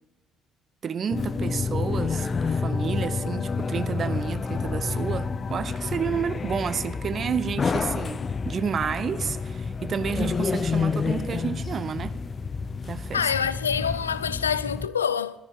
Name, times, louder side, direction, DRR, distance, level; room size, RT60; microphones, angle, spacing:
voice 1, 0.8-12.2 12.8-13.3, right 7 dB, 45° right, 0.8 m, -30 dB
sound 1, 1.1-14.9, left 5 dB, 35° left, 0.6 m, -29 dB
voice 2, 13.1-15.4, left 7 dB, 90° left, 0.4 m, -26 dB
14.5 x 14.0 x 5.1 m
figure-of-eight pair, 50°, 0 cm